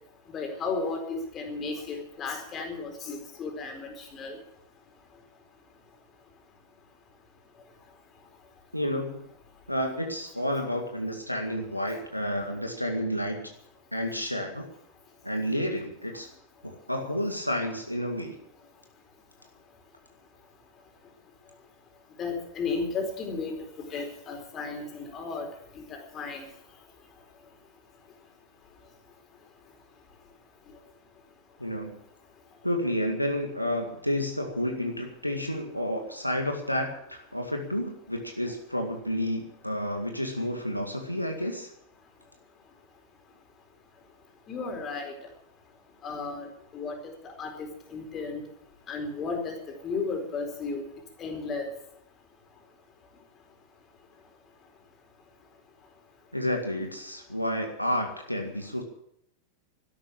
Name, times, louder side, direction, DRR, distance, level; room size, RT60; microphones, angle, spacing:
voice 1, 0.3-4.4 11.9-12.0 22.2-25.5 25.8-26.4 44.5-45.1 46.0-48.4 48.9-50.8 51.2-51.7, left 4 dB, 30° left, 3 dB, 4.3 m, -34 dB
voice 2, 8.7-9.2 9.7-13.5 13.9-14.7 15.2-16.3 16.6-18.4 31.6-32.0 32.6-41.7 56.3-58.8, equal, 90° left, 3 dB, 2.0 m, -30 dB
13.0 x 11.5 x 8.7 m, 0.75 s
figure-of-eight pair, 90°, 0 cm